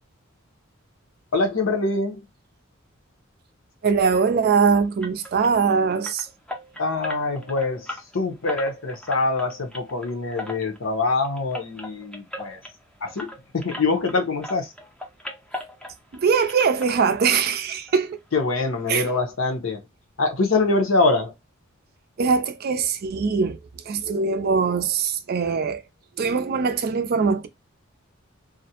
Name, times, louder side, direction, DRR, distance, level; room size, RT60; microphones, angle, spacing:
voice 1, 1.3-2.2 6.8-7.9 8.1-12.6 13.0-13.3 13.5-14.7 18.3-19.8 20.2-21.3, left 3 dB, 70° left, 0.7 m, -24 dB
voice 2, 3.8-6.3 16.2-18.2 18.9-19.1 22.2-23.6 23.9-25.8 26.2-27.5, right 5 dB, 50° right, 0.4 m, -22 dB
sound 1, 5.0-14.2 14.4-16.2 16.5-17.6 17.8-18.0 18.4-18.5 18.8-18.9, left 1 dB, 5° left, 0.5 m, -38 dB
2.4 x 2.1 x 2.8 m
head